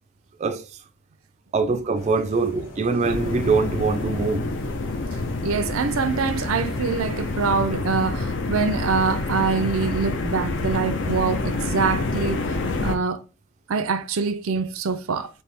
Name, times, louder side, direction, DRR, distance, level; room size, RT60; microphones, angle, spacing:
voice 1, 1.5-4.5, right 4 dB, 35° right, 0.4 m, -23 dB
sound 1, 1.9-7.9, equal, 45° left, 2.1 m, -42 dB
voice 2, 2.4-3.0 5.4-12.4 12.8-13.2 13.7-15.3, right 5 dB, 85° right, 0.5 m, -25 dB
sound 2, 3.0-13.0, left 3 dB, 60° left, 0.7 m, -27 dB
4.4 x 2.7 x 3.4 m
head